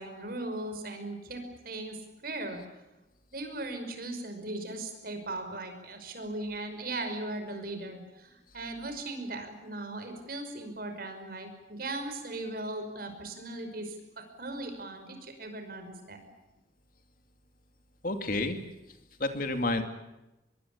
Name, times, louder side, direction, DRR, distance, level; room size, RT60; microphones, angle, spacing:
voice 1, 0.0-2.6 3.3-16.2, right 2 dB, 55° right, 6 dB, 5.6 m, -38 dB
voice 2, 18.0-18.6 19.2-19.8, left 2 dB, 50° left, 7 dB, 2.6 m, -29 dB
25.5 x 22.0 x 8.6 m, 0.98 s
head